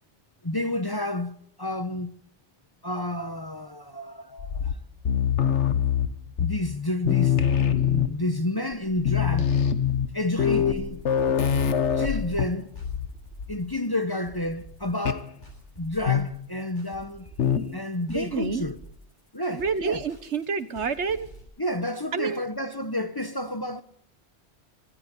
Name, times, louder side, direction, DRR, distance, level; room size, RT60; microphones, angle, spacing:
voice 1, 0.4-2.2 2.8-4.7 6.4-7.5 7.9-9.6 10.1-11.0 11.9-12.7 13.5-15.3 15.8-17.3 17.7-18.8 19.3-20.0 21.6-23.8, left 1 dB, 20° left, 0.9 m, -30 dB
sound 1, 4.4-6.8 7.1-8.4 8.7-8.8 9.0-13.1 13.4-13.7 15.1-15.3 16.1-16.5 17.4-17.8, left 8 dB, 85° left, 1.4 m, -24 dB
sound 2, 10.8-21.4, right 1 dB, 45° left, 7.0 m, -48 dB
voice 2, 18.1-18.6 19.5-21.3 22.1-22.4, right 5 dB, 80° right, 1.6 m, -28 dB
25.5 x 14.0 x 8.2 m
omnidirectional pair, 1.2 m